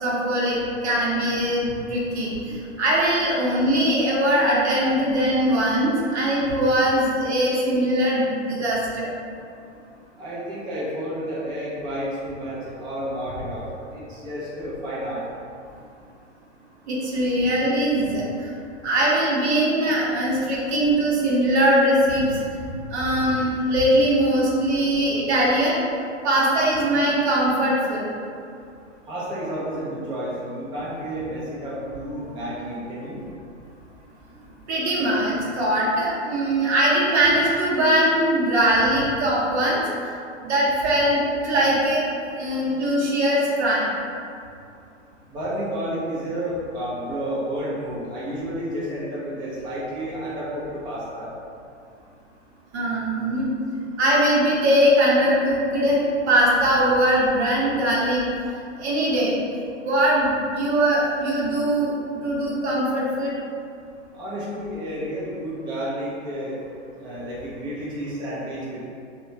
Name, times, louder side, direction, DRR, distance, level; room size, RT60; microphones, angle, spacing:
voice 1, 0.0-9.1 16.9-18.5 18.8-22.4 22.9-25.8 26.2-28.0 34.7-39.8 40.4-41.2 41.4-43.9 52.7-53.5 54.0-56.0 56.3-58.2 58.8-61.9 62.2-63.4, right 1 dB, 65° right, -5 dB, 0.8 m, -21 dB
voice 2, 10.2-15.2 29.1-33.2 45.3-51.3 64.1-66.6 67.0-68.8, equal, 15° right, -8 dB, 0.4 m, -31 dB
2.7 x 2.2 x 2.7 m, 2.4 s
hypercardioid pair, 110°, 36 cm